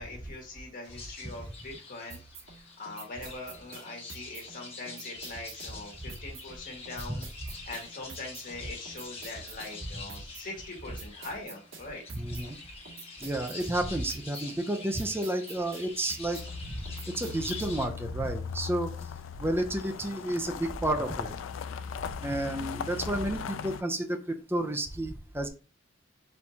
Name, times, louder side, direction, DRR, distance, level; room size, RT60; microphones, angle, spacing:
voice 1, 0.0-2.2 2.5-7.3 7.6-12.0, left 2 dB, 45° left, 0 dB, 1.7 m, -42 dB
sound 1, 0.8-17.9, left 4 dB, 30° left, 1.3 m, -46 dB
sound 2, 2.1-18.0, right 5 dB, 85° right, 1.9 m, -48 dB
voice 2, 12.1-12.6 13.2-21.3 22.2-25.5, right 1 dB, 10° right, 5 dB, 0.5 m, -31 dB
sound 3, 16.3-23.8, left 6 dB, 75° left, 0.3 m, -39 dB
4.3 x 3.6 x 2.7 m, 0.33 s
head